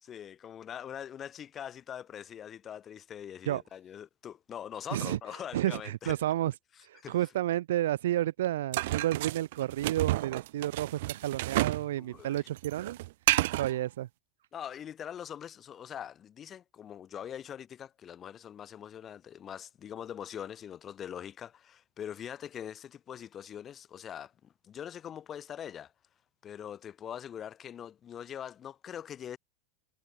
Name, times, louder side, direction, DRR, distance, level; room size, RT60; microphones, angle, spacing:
voice 1, 0.0-6.2 6.9-7.3 12.0-12.5 14.5-25.9 26.4-29.4, left 9 dB, 20° left, 3.1 m, -43 dB
voice 2, 5.5-6.5 6.8-13.0 13.5-14.1, right 13 dB, 75° right, 1.0 m, -31 dB
sound 1, 8.7-11.9 12.1-13.7, right 19 dB, 55° right, 0.4 m, -30 dB
supercardioid pair, 170°, 0 cm